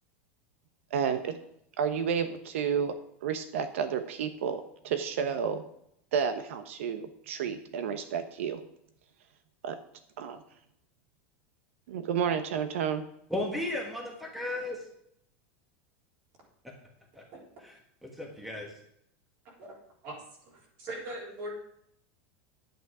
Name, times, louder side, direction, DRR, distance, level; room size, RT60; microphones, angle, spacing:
voice 1, 0.9-1.4 1.8-2.9 3.2-5.6 6.1-8.6 9.6-9.8 10.2-10.4 11.9-13.0, right 7 dB, 85° right, 9 dB, 1.0 m, -31 dB
voice 2, 13.3-14.8 18.0-18.7, left 1 dB, ahead, 0 dB, 1.4 m, -34 dB
voice 3, 19.4-19.8 20.0-21.5, right 1 dB, 40° right, -2 dB, 3.8 m, -41 dB
11.0 x 9.1 x 4.9 m, 0.73 s
supercardioid pair, 180°, 7 cm